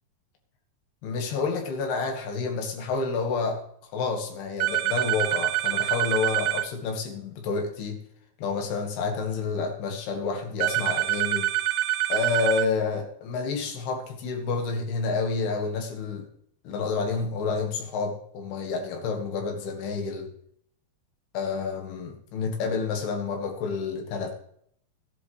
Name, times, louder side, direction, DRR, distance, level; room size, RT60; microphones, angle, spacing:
voice 1, 1.0-3.6 3.9-8.0 8.4-11.5 12.1-16.3 16.7-20.3 21.3-24.3, left 4 dB, 85° left, 4 dB, 3.7 m, -29 dB
sound 1, 4.6-6.7 10.6-12.7, right 14 dB, 90° right, 1.8 m, -26 dB
14.5 x 10.5 x 3.2 m, 0.67 s
omnidirectional pair, 4.5 m